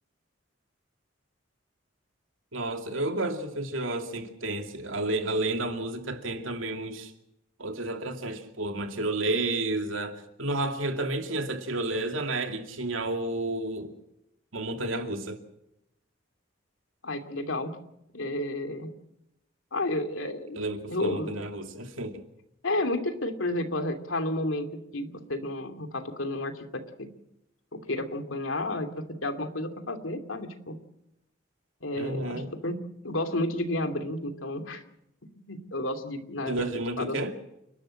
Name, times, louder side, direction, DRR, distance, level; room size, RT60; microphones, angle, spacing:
voice 1, 2.5-7.1 7.6-13.9 14.5-15.4 20.6-22.2 32.0-32.5 36.5-37.3, right 2 dB, 85° right, 2.6 m, -31 dB
voice 2, 17.0-17.7 18.1-18.9 19.7-20.6 20.9-21.4 22.6-27.1 27.7-30.8 31.8-32.8 33.0-34.8 35.5-36.6 37.0-37.2, left 1 dB, 85° left, 2.6 m, -31 dB
29.5 x 12.5 x 7.6 m
head